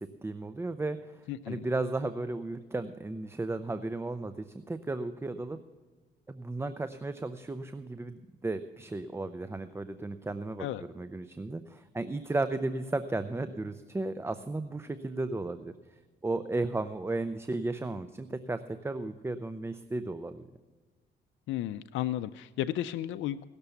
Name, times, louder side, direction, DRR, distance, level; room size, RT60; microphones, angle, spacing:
voice 1, 0.0-5.6 6.3-10.7 10.9-20.5, right 2 dB, 10° right, 11 dB, 0.5 m, -34 dB
voice 2, 1.3-1.6 10.6-10.8 21.5-23.4, left 13 dB, 80° left, 10 dB, 0.4 m, -33 dB
17.0 x 6.8 x 7.0 m, 1.4 s
cardioid pair, 90°, 20 cm